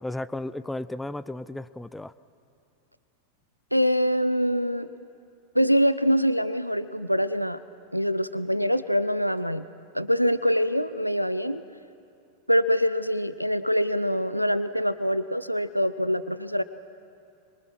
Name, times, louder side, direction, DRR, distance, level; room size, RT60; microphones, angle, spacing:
voice 1, 0.0-2.1, left 1 dB, 5° left, 17 dB, 0.5 m, -34 dB
voice 2, 3.7-4.9 5.5-7.6 7.9-9.7 9.9-11.6 12.5-16.6, equal, 90° left, 14 dB, 0.6 m, -24 dB
27.5 x 24.0 x 6.2 m, 2.5 s
figure-of-eight pair, 90°, 0 cm